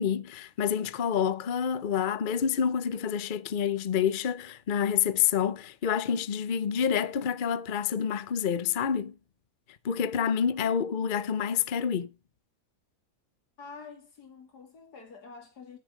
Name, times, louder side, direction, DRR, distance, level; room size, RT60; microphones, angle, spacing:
voice 1, 0.0-9.1 9.8-12.1, left 8 dB, 50° left, 0.6 m, -28 dB
voice 2, 13.6-15.8, left 4 dB, 70° left, 2.9 m, -47 dB
11.0 x 8.3 x 5.1 m
omnidirectional pair, 1.8 m